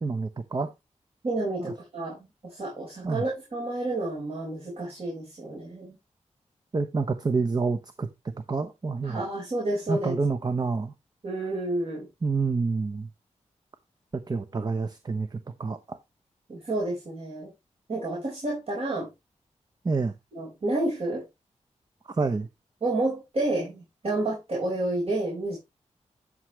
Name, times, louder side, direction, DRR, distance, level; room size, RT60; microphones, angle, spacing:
voice 1, 0.0-0.7 1.6-1.7 3.0-3.2 6.7-8.1 8.5-9.3 9.9-10.9 12.2-13.1 14.3-16.0 19.8-20.1 22.1-22.5, right 4 dB, 35° right, 0.8 m, -28 dB
voice 2, 1.2-2.2 2.4-6.0 9.0-10.1 11.2-12.1 16.5-17.5 17.9-19.1 20.3-21.2 22.8-25.6, right 2 dB, 55° right, 4.7 m, -30 dB
11.0 x 6.1 x 3.1 m
wide cardioid pair, 100°, 12 cm